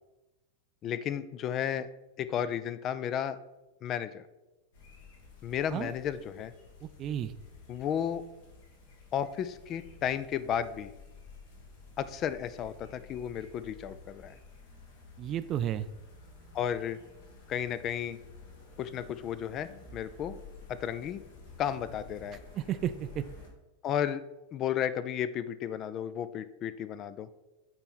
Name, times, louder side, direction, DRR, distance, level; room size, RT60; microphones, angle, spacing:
voice 1, 0.8-1.9 2.2-3.4 3.8-4.3 5.4-6.5 7.7-8.2 9.1-10.9 12.0-14.3 16.5-17.0 17.5-18.2 18.8-20.4 20.7-21.2 21.6-22.4 23.8-24.2 24.5-27.3, left 9 dB, 30° left, 14 dB, 0.4 m, -33 dB
sound 1, 4.7-23.5, left 3 dB, 55° left, 1.6 m, -52 dB
voice 2, 6.8-7.3 15.2-15.9 22.6-23.2, right 11 dB, 30° right, 13 dB, 0.4 m, -32 dB
8.7 x 4.5 x 4.2 m, 1.0 s
figure-of-eight pair, 90°, 0 cm